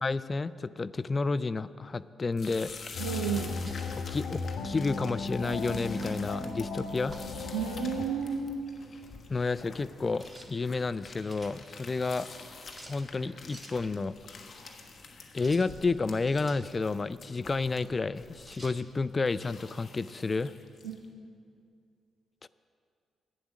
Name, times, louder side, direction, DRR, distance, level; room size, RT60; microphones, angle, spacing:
voice 1, 0.0-3.1 4.1-7.2 9.3-12.3 12.9-14.2 15.3-20.5 22.4-22.5, left 3 dB, 35° left, 15 dB, 0.4 m, -31 dB
sound 1, 2.3-21.1, left 4 dB, 50° left, 1.2 m, -48 dB
sound 2, 2.9-8.1, left 3 dB, 70° left, 0.8 m, -36 dB
voice 2, 3.0-3.6 7.5-8.5 20.8-20.9, right 7 dB, 85° right, 6 dB, 0.6 m, -31 dB
sound 3, 3.4-3.9 4.9-5.1 6.0-6.2 7.1-7.4 10.2-10.5 11.0-11.6 12.7-13.0 13.5-13.8 15.3-15.7 16.2-16.6 18.5-18.8, right 1 dB, 20° right, 1.6 m, -50 dB
10.5 x 9.0 x 6.3 m, 2.4 s
hypercardioid pair, 40°, 0 cm